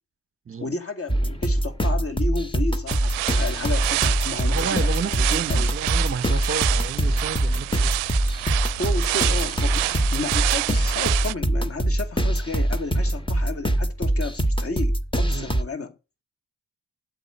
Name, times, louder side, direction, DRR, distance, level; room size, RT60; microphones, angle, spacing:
voice 1, 0.6-5.7 8.7-15.9, left 3 dB, 30° left, 2.3 m, -32 dB
sound 1, 1.1-15.6, right 1 dB, 10° left, 1.6 m, -23 dB
sound 2, 2.9-11.3, right 22 dB, 80° right, 0.6 m, -28 dB
voice 2, 4.5-7.9 15.3-15.5, right 4 dB, 25° right, 1.1 m, -31 dB
9.4 x 8.2 x 7.8 m
hypercardioid pair, 40°, 48 cm